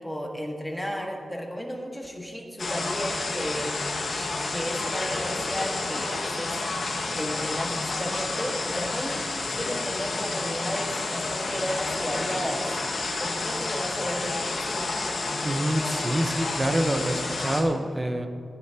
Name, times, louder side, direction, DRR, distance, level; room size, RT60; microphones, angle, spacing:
voice 1, 0.0-3.9 4.1-6.6 7.2-12.8 13.2-14.9, equal, ahead, 0 dB, 1.6 m, -33 dB
sound 1, 2.6-17.6, left 3 dB, 55° left, 1.8 m, -30 dB
voice 2, 15.4-18.3, right 1 dB, 20° right, 6 dB, 1.0 m, -26 dB
17.0 x 12.0 x 2.9 m, 2.6 s
wide cardioid pair, 155°, 0 cm